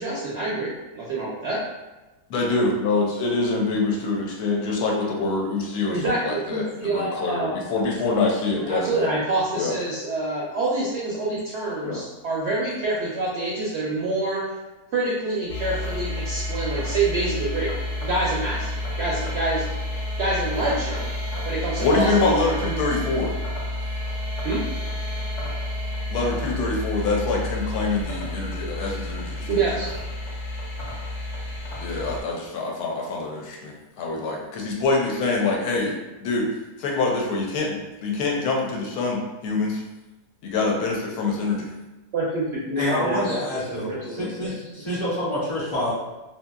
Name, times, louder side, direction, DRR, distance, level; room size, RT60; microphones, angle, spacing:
voice 1, 0.0-1.6 5.9-7.6 8.6-14.4 14.9-17.7 18.0-18.7 19.0-19.6 20.2-21.0 21.4-22.5 24.4-24.6 29.5-29.9 42.1-43.4 43.7-44.5, right 2 dB, 70° right, -6 dB, 0.6 m, -26 dB
voice 2, 2.3-9.1 9.5-9.7 11.8-12.0 21.8-23.3 26.1-29.5 31.8-35.9 36.2-36.5 36.8-39.8 40.4-41.7 42.9-43.1, left 3 dB, 80° left, -1 dB, 1.1 m, -25 dB
sound 1, 15.5-32.2, left 1 dB, 60° left, 1.0 m, -30 dB
voice 3, 42.8-45.9, left 1 dB, 25° left, -8 dB, 0.7 m, -27 dB
2.8 x 2.7 x 2.2 m, 1.1 s
omnidirectional pair, 1.7 m